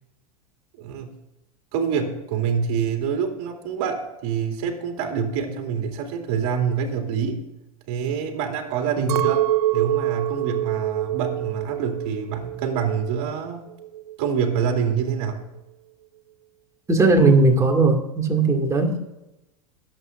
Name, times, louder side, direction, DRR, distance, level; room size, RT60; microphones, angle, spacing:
voice 1, 0.8-1.1 1.7-7.5 7.9-13.6 14.2-15.5, right 6 dB, 55° right, 3 dB, 2.5 m, -26 dB
Chink clink, 9.1-13.5 13.7-14.5, right 13 dB, 85° right, 0.4 m, -26 dB
voice 2, 16.9-19.0, right 3 dB, 15° right, 2 dB, 2.3 m, -18 dB
22.5 x 7.9 x 2.6 m, 0.95 s
hypercardioid pair, 100°, 19 cm